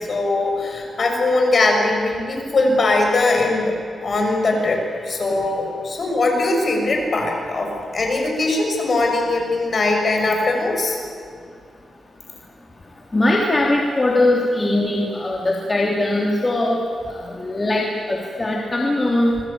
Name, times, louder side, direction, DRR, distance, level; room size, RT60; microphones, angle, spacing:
voice 1, 0.0-3.7 4.0-11.0, left 2 dB, 45° left, 2 dB, 6.7 m, -20 dB
voice 2, 13.1-16.8 17.1-19.5, left 1 dB, 25° left, -1 dB, 3.2 m, -20 dB
27.5 x 21.5 x 8.9 m, 2.1 s
cardioid pair, 100°, 0 cm